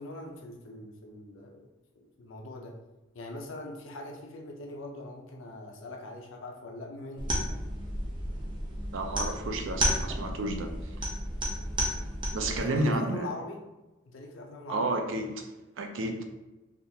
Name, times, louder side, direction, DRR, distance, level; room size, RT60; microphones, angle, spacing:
voice 1, 0.0-1.7 2.0-2.8 3.1-7.3 12.4-13.6 14.1-14.9, left 2 dB, 75° left, 1 dB, 0.5 m, -42 dB
sound 1, 7.2-12.6, equal, 25° right, 0.5 m, -32 dB
voice 2, 8.9-10.9 12.3-13.3 14.7-15.5 15.8-16.2, right 2 dB, 70° right, 4 dB, 0.4 m, -31 dB
3.5 x 2.3 x 2.8 m, 1.0 s
head